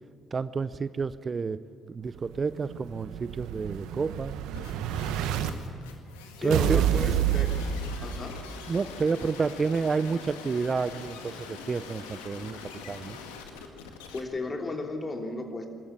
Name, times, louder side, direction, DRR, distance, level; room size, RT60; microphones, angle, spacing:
voice 1, 0.3-4.3 6.4-6.8 8.7-12.6 12.9-13.2, right 4 dB, 40° right, 15 dB, 0.6 m, -30 dB
Explosion, 2.2-5.5 6.5-8.5, right 10 dB, 75° right, 1.1 m, -28 dB
sound 1, 4.5-14.2, left 5 dB, 90° left, 1.9 m, -44 dB
voice 2, 6.4-7.5 8.0-8.4 14.1-15.7, left 2 dB, 35° left, 3 dB, 3.2 m, -34 dB
23.0 x 13.5 x 9.8 m, 2.3 s
hypercardioid pair, 55°, 0 cm